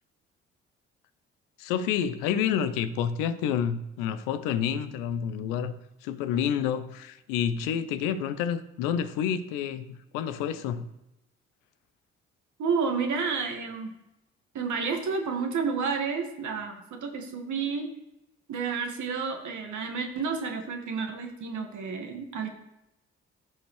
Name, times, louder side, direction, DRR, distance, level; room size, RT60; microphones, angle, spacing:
voice 1, 1.6-5.7 6.0-10.9, left 8 dB, 70° left, 0.8 m, -29 dB
voice 2, 12.6-13.9 14.5-17.9 18.5-22.5, right 5 dB, 55° right, 2.0 m, -30 dB
14.5 x 5.1 x 3.3 m
figure-of-eight pair, 45°, 35 cm